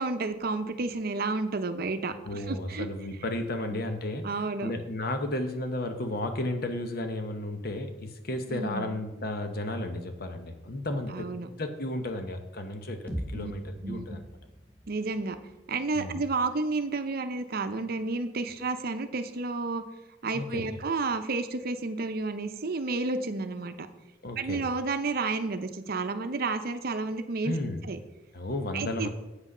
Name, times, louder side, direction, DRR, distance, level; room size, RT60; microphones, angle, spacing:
voice 1, 0.0-2.9 3.7-3.8 4.2-4.7 8.5-9.0 11.1-11.5 13.3-13.5 13.8-14.2 14.9-15.4 15.7-19.8 20.2-23.9 24.4-27.6 27.8-28.0 28.7-29.1, right 3 dB, 55° right, 9 dB, 0.6 m, -31 dB
voice 2, 2.2-4.3 4.6-14.2 15.9-16.2 20.3-20.6 24.2-24.7 27.4-27.8 28.3-29.1, left 1 dB, 55° left, 6 dB, 0.9 m, -33 dB
sound 1, 13.1-17.0, equal, 10° left, 1.3 m, -42 dB
8.1 x 6.1 x 5.5 m, 1.0 s
head